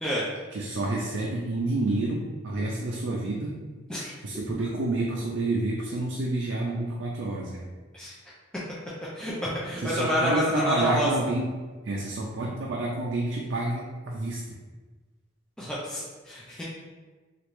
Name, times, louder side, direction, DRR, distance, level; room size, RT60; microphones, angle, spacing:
voice 1, 0.5-3.5 4.2-7.6 9.8-11.5 11.8-14.4, right 2 dB, 70° right, -2 dB, 0.4 m, -29 dB
voice 2, 9.2-11.1 15.6-16.6, equal, 5° left, -8 dB, 0.4 m, -28 dB
3.1 x 2.4 x 3.0 m, 1.3 s
head